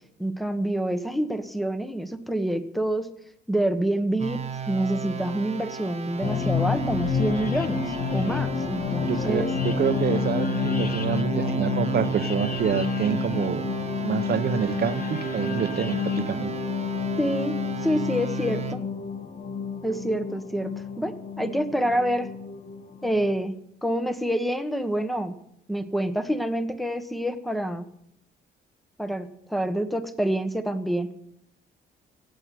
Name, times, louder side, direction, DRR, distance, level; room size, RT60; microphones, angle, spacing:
voice 1, 0.2-3.1 3.5-9.5 17.2-17.6 17.8-18.8 19.8-20.7 21.0-22.3 23.0-25.4 25.7-27.9 29.0-31.1, right 1 dB, ahead, 9 dB, 1.4 m, -27 dB
sound 1, 4.2-18.8, right 7 dB, 30° right, 1.3 m, -34 dB
sound 2, 6.2-23.3, left 6 dB, 45° left, 1.6 m, -29 dB
voice 2, 9.0-13.7 14.0-16.5, right 8 dB, 55° right, 11 dB, 1.1 m, -27 dB
16.5 x 8.1 x 7.9 m, 0.75 s
cardioid pair, 90°, 20 cm